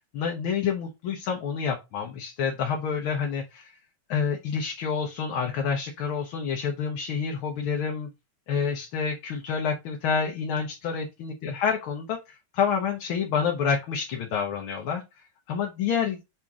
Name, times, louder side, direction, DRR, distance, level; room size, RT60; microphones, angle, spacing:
voice 1, 0.1-3.8 4.1-8.1 8.5-15.0 15.5-16.2, left 6 dB, 75° left, 1.8 m, -28 dB
6.4 x 4.4 x 3.6 m
omnidirectional pair, 2.3 m